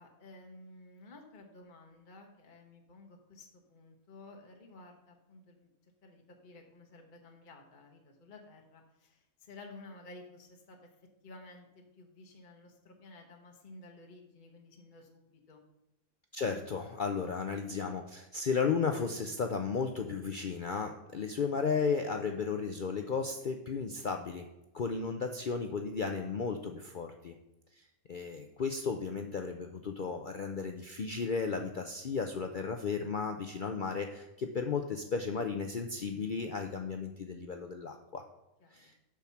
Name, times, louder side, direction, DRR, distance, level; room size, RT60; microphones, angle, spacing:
voice 1, 0.0-5.7 6.0-10.9 11.2-15.6 38.6-38.9, left 2 dB, 35° left, 2 dB, 1.0 m, -54 dB
voice 2, 16.3-24.5 24.7-27.3 28.1-38.2 38.7-38.9, left 5 dB, 70° left, 5 dB, 0.4 m, -34 dB
7.0 x 6.3 x 5.7 m, 0.93 s
omnidirectional pair, 1.6 m